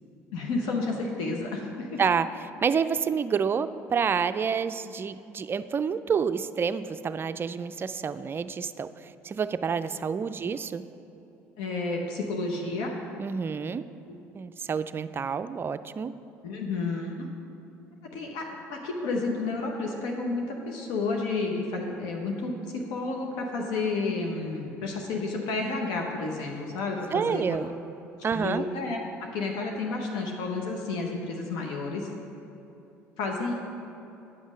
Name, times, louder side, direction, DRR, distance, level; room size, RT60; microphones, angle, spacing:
voice 1, 0.3-2.0 11.6-12.9 14.1-14.2 16.4-17.3 18.1-18.4 18.7-27.4 28.3-32.1 33.2-33.5, left 3 dB, 75° left, 0 dB, 1.0 m, -31 dB
voice 2, 2.0-10.8 13.2-13.8 14.3-16.1 27.1-27.7 28.2-28.6, right 6 dB, 35° right, 12 dB, 0.4 m, -28 dB
9.3 x 5.5 x 6.1 m, 2.9 s
hypercardioid pair, 70°, 7 cm